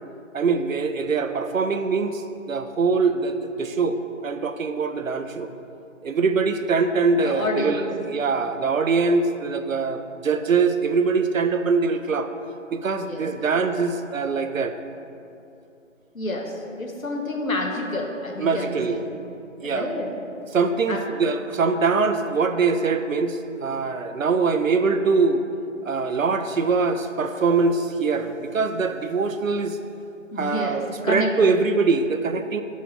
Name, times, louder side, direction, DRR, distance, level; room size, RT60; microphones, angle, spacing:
voice 1, 0.3-5.5 6.0-12.3 12.7-14.8 18.4-19.1 19.6-19.9 20.5-25.4 25.8-29.8 30.4-32.6, right 4 dB, 75° right, 9 dB, 0.5 m, -23 dB
voice 2, 7.2-7.9 13.0-13.4 16.1-19.0 19.6-20.1 20.9-21.0 30.3-31.3, left 1 dB, 85° left, 1 dB, 1.0 m, -29 dB
6.1 x 5.4 x 3.1 m, 2.6 s
figure-of-eight pair, 170°, 40 cm